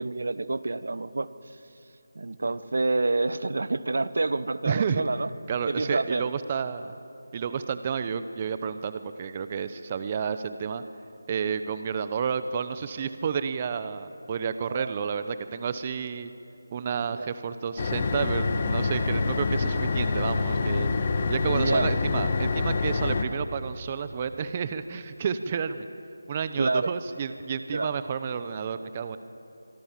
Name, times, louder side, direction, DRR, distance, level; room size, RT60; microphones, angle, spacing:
voice 1, 0.0-1.6 2.1-5.3 5.7-6.3 14.7-15.0 17.1-17.3 21.4-21.9 26.6-26.9 27.7-28.0, right 3 dB, 65° right, 15 dB, 1.1 m, -28 dB
voice 2, 4.6-5.0 5.5-6.9 7.3-10.8 11.3-16.3 16.7-25.9 26.3-29.2, right 6 dB, 25° right, 11 dB, 0.8 m, -31 dB
sound 1, 17.8-23.2, left 4 dB, 35° left, 1.7 m, -26 dB
25.0 x 24.0 x 7.5 m, 2.9 s
figure-of-eight pair, 165°, 0 cm